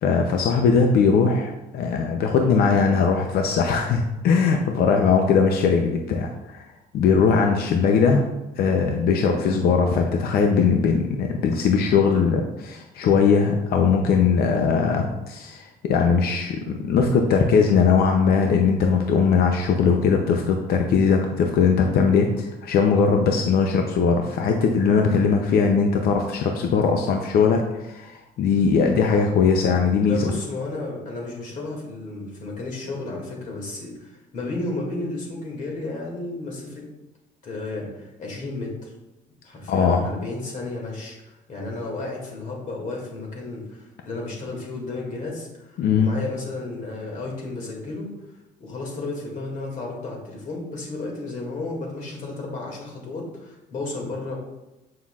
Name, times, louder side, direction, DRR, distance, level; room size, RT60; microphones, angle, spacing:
voice 1, 0.0-6.7 6.9-8.2 8.5-30.3 39.7-40.1 45.8-46.1, left 5 dB, 65° left, 3 dB, 0.6 m, -20 dB
voice 2, 30.0-36.9 37.4-38.9 39.4-48.1 48.6-54.4, left 2 dB, 50° left, -1 dB, 2.2 m, -33 dB
7.5 x 5.6 x 2.4 m, 1.0 s
cardioid pair, 110°, 17 cm